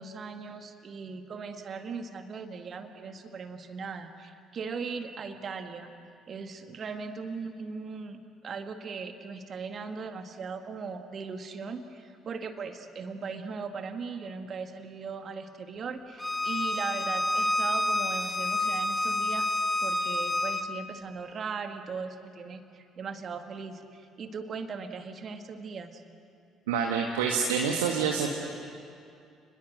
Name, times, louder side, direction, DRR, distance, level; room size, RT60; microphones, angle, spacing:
voice 1, 0.0-5.9 6.3-19.5 19.8-26.0, right 5 dB, 45° right, 7 dB, 1.9 m, -38 dB
Bowed string instrument, 16.2-20.6, left 2 dB, 15° left, 1.2 m, -28 dB
voice 2, 26.7-28.3, right 6 dB, 75° right, 1 dB, 1.6 m, -27 dB
30.0 x 21.0 x 7.9 m, 2.4 s
figure-of-eight pair, 50°, 0 cm